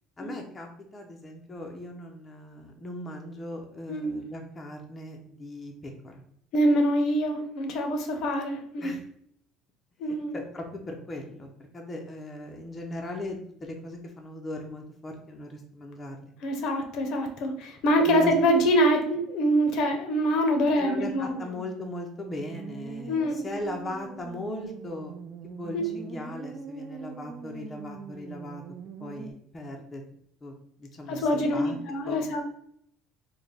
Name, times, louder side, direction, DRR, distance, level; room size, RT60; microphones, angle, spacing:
voice 1, 0.2-6.2 8.8-9.0 10.0-16.3 18.0-18.3 20.8-25.1 25.6-28.6 29.0-30.0 30.4-31.8 32.1-32.2, left 1 dB, 20° left, 1 dB, 0.5 m, -39 dB
voice 2, 3.9-4.2 6.5-9.0 10.0-10.4 16.4-21.4 23.1-23.4 25.7-25.9 31.1-32.4, equal, 60° left, 5 dB, 0.6 m, -25 dB
sound 1, 20.8-29.3, right 4 dB, 35° right, 0.4 m, -42 dB
3.3 x 2.1 x 3.8 m, 0.68 s
cardioid pair, 135°, 0 cm